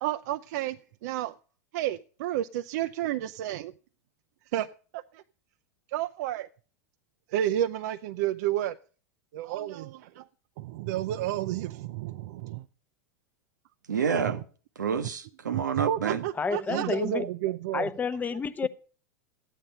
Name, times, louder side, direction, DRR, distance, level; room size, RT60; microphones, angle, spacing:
voice 1, 0.0-1.3 1.7-3.7 4.5-4.7 4.9-5.2 5.9-6.5 7.3-8.7 9.3-10.3 10.6-12.7 14.3-14.4 15.5-17.9 18.6-18.7, right 12 dB, 65° right, 0.5 m, -31 dB
voice 2, 13.9-14.4 14.8-16.2, right 7 dB, 90° right, 1.0 m, -28 dB
voice 3, 16.3-17.3 17.7-18.7, left 5 dB, 15° left, 0.8 m, -30 dB
12.5 x 9.1 x 5.6 m
hypercardioid pair, 100°, 9 cm